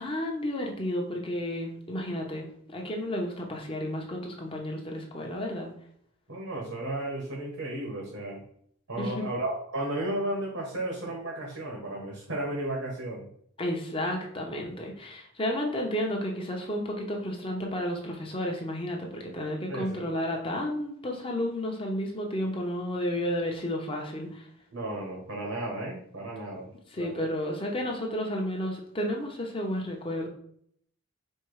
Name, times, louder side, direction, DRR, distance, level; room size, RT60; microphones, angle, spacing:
voice 1, 0.0-5.7 9.0-9.2 13.6-24.5 26.9-30.3, equal, 25° left, 1 dB, 0.7 m, -32 dB
voice 2, 6.3-8.4 8.9-13.3 19.7-20.1 24.7-26.7 27.0-27.2, right 1 dB, 70° right, -2 dB, 1.1 m, -34 dB
4.4 x 2.3 x 4.7 m, 0.66 s
head